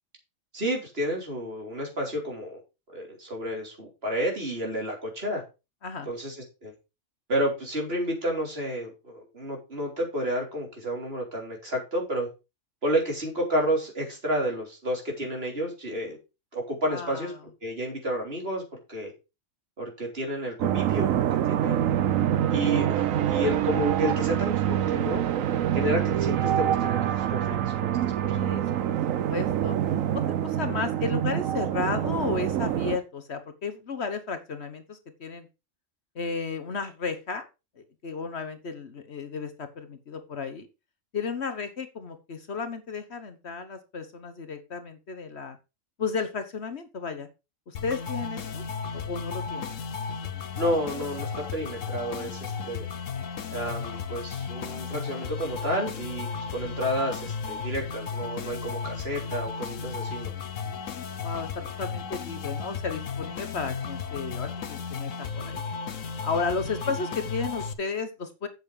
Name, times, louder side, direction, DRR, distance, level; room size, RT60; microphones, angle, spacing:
voice 1, 0.5-2.6 2.9-5.4 6.0-6.4 6.6-6.7 7.3-12.3 12.8-16.2 16.5-17.3 17.6-18.6 18.9-19.1 19.8-21.1 21.4-21.9 22.5-25.2 25.7-27.6 27.8-28.5 50.6-52.9 53.5-60.3, equal, 50° right, 1 dB, 3.8 m, -30 dB
voice 2, 16.9-17.3 28.3-28.6 28.9-29.0 29.3-29.7 30.1-35.5 36.1-37.4 37.8-40.7 41.1-45.6 46.0-47.3 47.7-48.6 48.9-49.7 61.2-61.5 61.8-65.6 66.2-68.5, left 4 dB, 55° left, 9 dB, 1.4 m, -33 dB
sound 1, 20.6-33.0, right 11 dB, 90° right, 1.1 m, -26 dB
sound 2, 47.7-67.7, left 5 dB, 80° left, 1.4 m, -34 dB
8.1 x 6.9 x 4.9 m, 0.28 s
omnidirectional pair, 1.3 m